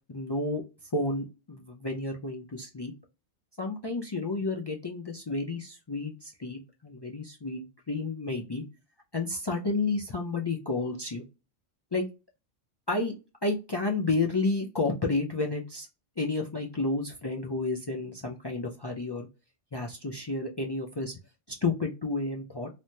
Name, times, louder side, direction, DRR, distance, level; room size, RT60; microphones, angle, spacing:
voice 1, 0.1-0.6 0.9-2.9 3.6-8.6 9.1-11.2 11.9-12.0 12.9-13.1 13.4-15.9 16.2-19.3 19.7-21.2 21.5-22.7, left 3 dB, 45° left, 0 dB, 0.3 m, -31 dB
3.3 x 2.0 x 2.7 m, 0.29 s
omnidirectional pair, 1.1 m